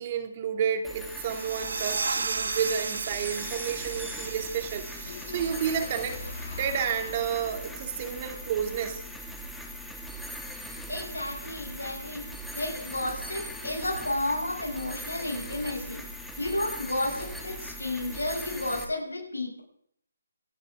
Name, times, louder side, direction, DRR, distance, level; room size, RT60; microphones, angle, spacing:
voice 1, 0.0-6.2 6.6-9.0, right 8 dB, 35° right, 5 dB, 2.6 m, -31 dB
sound 1, 0.8-18.8, equal, ahead, 2.1 m, -40 dB
sound 2, 1.1-6.5, right 4 dB, 65° right, 1.3 m, -35 dB
sound 3, 5.0-9.0, left 3 dB, 70° left, 6.4 m, -44 dB
voice 2, 10.9-12.2 12.5-16.0 16.4-19.6, left 2 dB, 90° left, -2 dB, 6.4 m, -32 dB
27.0 x 11.5 x 3.7 m, 0.67 s
figure-of-eight pair, 150°, 0 cm